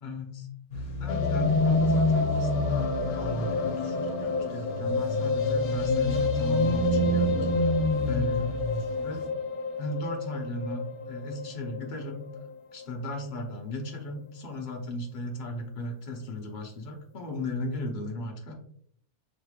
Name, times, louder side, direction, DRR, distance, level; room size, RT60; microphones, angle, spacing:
voice 1, 0.0-0.5 0.7-7.7 8.1-8.6 9.0-9.3 9.8-12.3 12.7-18.5, left 1 dB, 40° left, 2 dB, 0.7 m, -36 dB
sound 1, 0.7-9.1, left 1 dB, 60° left, 1.2 m, -28 dB
sound 2, 1.1-13.2 13.5-13.6 13.8-13.9 14.2-14.3, left 3 dB, 80° left, 1.1 m, -30 dB
4.9 x 3.2 x 2.3 m, 0.66 s
omnidirectional pair, 1.6 m